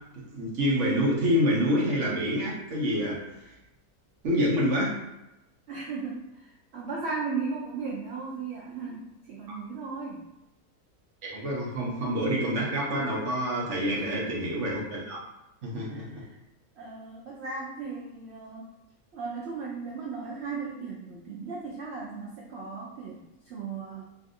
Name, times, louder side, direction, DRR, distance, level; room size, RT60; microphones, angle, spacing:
voice 1, 0.1-3.5 4.2-5.0 11.2-15.2 15.6-16.2, equal, 60° right, -4 dB, 0.9 m, -27 dB
voice 2, 5.7-10.2 14.0-14.3 15.9-16.4 16.8-18.7 19.1-24.0, right 4 dB, 85° right, -3 dB, 0.5 m, -36 dB
3.2 x 2.6 x 2.5 m, 0.91 s
omnidirectional pair, 1.7 m